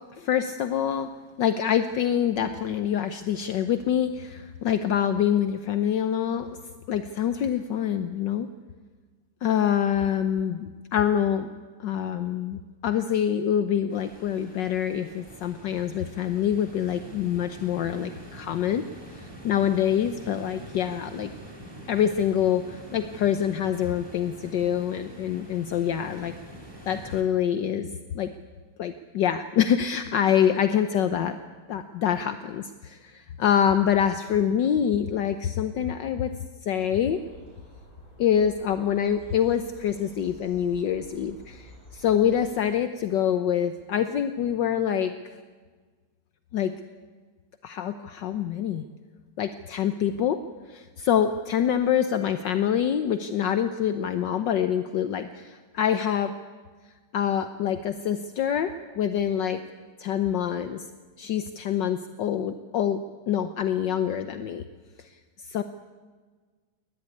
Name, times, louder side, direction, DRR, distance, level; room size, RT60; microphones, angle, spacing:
voice 1, 0.2-1.1 1.4-6.6 6.9-8.5 9.4-11.5 11.8-18.8 19.1-21.3 21.9-26.3 26.9-28.3 28.8-31.4 31.7-36.3 36.6-37.2 38.2-45.1 46.5-46.7 47.6-48.8 49.4-50.4 50.7-56.3 57.1-59.6 60.0-60.8 61.2-63.0 63.3-64.6 65.0-65.1 65.5-65.6, left 9 dB, 70° left, 10 dB, 1.5 m, -25 dB
sound 1, 13.9-27.2, right 1 dB, 10° right, 3.6 m, -45 dB
sound 2, 37.1-42.5, left 1 dB, 25° left, 6.2 m, -50 dB
21.0 x 19.5 x 9.7 m, 1.5 s
omnidirectional pair, 2.1 m